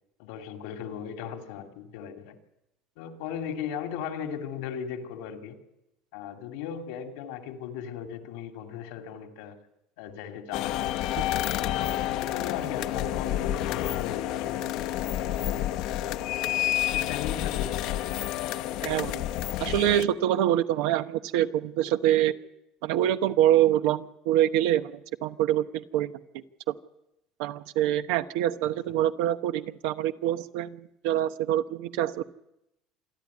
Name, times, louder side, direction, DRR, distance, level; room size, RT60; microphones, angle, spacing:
voice 1, 0.2-2.3 3.0-5.6 6.1-9.6 10.0-10.9 11.6-16.4 16.9-18.2 18.6-19.0 28.9-29.0, left 8 dB, 85° left, 2.6 m, -38 dB
sound 1, 10.5-20.0, left 13 dB, 65° left, 0.9 m, -29 dB
voice 2, 18.8-19.2 19.6-22.3 22.8-26.7 27.4-32.2, right 12 dB, 80° right, 1.1 m, -25 dB
27.0 x 11.0 x 9.7 m
cardioid pair, 135°, 0 cm